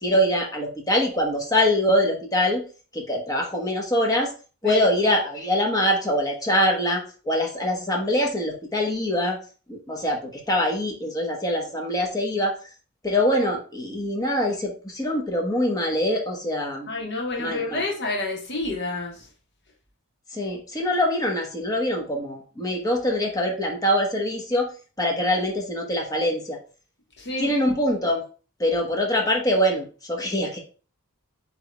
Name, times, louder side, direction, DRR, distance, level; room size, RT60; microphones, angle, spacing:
voice 1, 0.0-2.6 2.9-4.3 4.6-9.4 9.7-12.6 13.0-16.9 17.4-17.8 20.3-24.7 25.0-26.6 27.4-28.2 28.6-30.6, left 1 dB, 15° left, 0 dB, 1.0 m, -24 dB
voice 2, 16.9-19.3 27.2-27.5, left 2 dB, 50° left, -1 dB, 1.2 m, -29 dB
7.9 x 3.0 x 2.2 m, 0.37 s
head